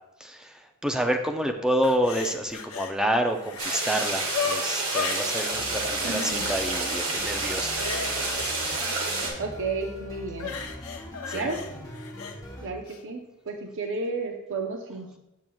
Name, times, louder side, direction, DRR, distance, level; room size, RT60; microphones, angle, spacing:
voice 1, 0.2-7.8 11.3-11.5, equal, 5° right, 5 dB, 0.4 m, -28 dB
sound 1, 1.8-2.9 3.3-5.5 6.1-7.0 7.3-9.4 10.3-12.4 12.9-13.0, left 6 dB, 75° left, 0.7 m, -36 dB
sound 2, 3.6-9.3, right 2 dB, 80° right, 1.7 m, -29 dB
sound 3, 5.5-12.7, equal, 15° left, 0.9 m, -41 dB
voice 2, 6.0-6.5 9.4-10.5 11.3-11.6 12.6-15.2, right 3 dB, 65° right, 2 dB, 0.7 m, -32 dB
7.7 x 7.2 x 2.3 m, 0.91 s
head